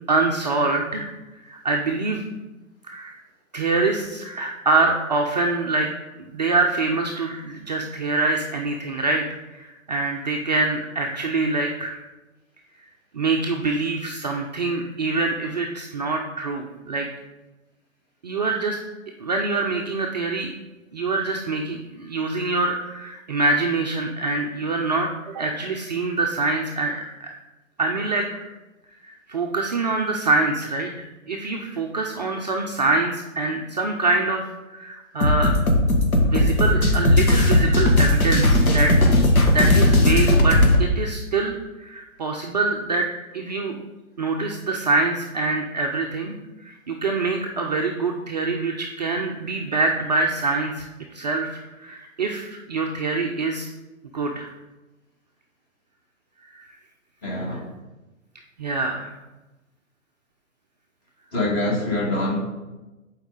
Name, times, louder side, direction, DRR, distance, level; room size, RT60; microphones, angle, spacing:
voice 1, 0.1-1.1 1.4-2.2 2.9-3.2 3.5-5.9 6.2-12.0 13.1-17.1 18.2-18.8 19.2-20.5 20.9-27.3 27.8-28.5 29.0-34.4 34.7-35.6 36.2-38.9 39.5-43.1 43.3-43.8 44.2-46.3 46.6-50.9 51.1-53.7 54.1-54.5 56.5-56.7 58.6-59.1, right 3 dB, 30° right, 1 dB, 0.5 m, -25 dB
sound 1, 35.2-40.8, left 1 dB, 80° left, 1.6 m, -17 dB
voice 2, 57.2-57.7 61.3-62.4, left 2 dB, 20° left, -3 dB, 1.9 m, -24 dB
10.5 x 4.8 x 3.8 m, 1.1 s
figure-of-eight pair, 135°, 42 cm